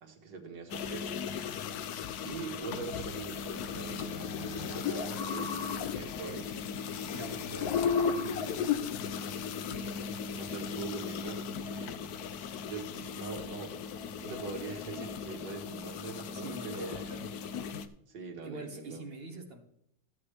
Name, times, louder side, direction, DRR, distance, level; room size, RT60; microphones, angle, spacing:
voice 1, 0.0-1.4 2.2-6.6 6.9-8.8 9.6-17.0 18.1-19.0, right 5 dB, 60° right, 2 dB, 2.3 m, -44 dB
sound 1, 0.7-17.9, left 6 dB, 65° left, 0.9 m, -36 dB
voice 2, 7.1-7.4 16.3-17.3 18.4-19.6, right 2 dB, 30° right, 3 dB, 1.5 m, -44 dB
15.0 x 8.1 x 3.4 m, 0.76 s
omnidirectional pair, 2.2 m